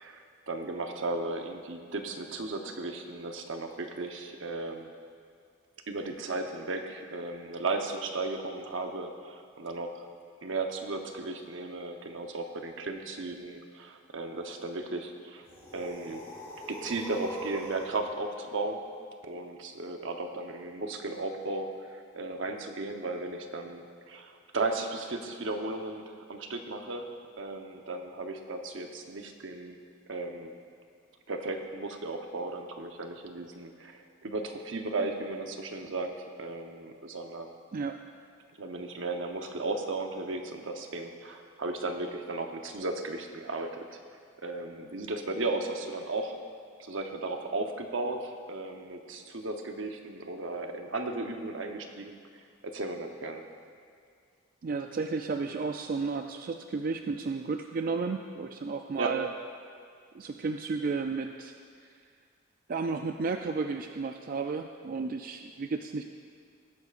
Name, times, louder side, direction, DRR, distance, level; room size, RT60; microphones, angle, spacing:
voice 1, 0.0-4.9 5.9-10.0 10.4-15.4 15.7-16.2 16.7-18.8 19.2-27.1 27.4-29.8 30.1-30.5 31.3-37.5 38.6-44.0 44.4-46.3 46.8-52.2 52.6-53.4 58.9-59.2, right 2 dB, 75° right, 4 dB, 0.9 m, -35 dB
sound 1, 15.4-18.0, equal, 15° left, 2.5 m, -43 dB
voice 2, 54.6-59.3 60.1-61.5 62.7-66.0, right 4 dB, 45° right, 5 dB, 0.4 m, -33 dB
19.5 x 9.8 x 2.5 m, 2.2 s
head